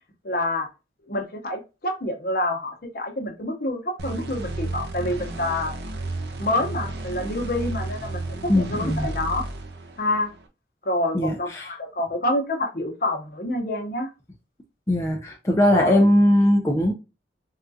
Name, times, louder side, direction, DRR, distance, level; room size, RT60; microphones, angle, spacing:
voice 1, 0.2-0.7 1.1-5.7 6.4-9.5 10.0-10.3 10.8-14.1 15.7-16.1, left 1 dB, 55° left, 0.8 m, -27 dB
sound 1, 4.0-10.4, right 2 dB, 65° right, 0.6 m, -33 dB
voice 2, 8.5-9.1 11.1-11.7 14.9-16.9, left 1 dB, 15° left, 0.4 m, -20 dB
3.6 x 2.3 x 2.6 m
head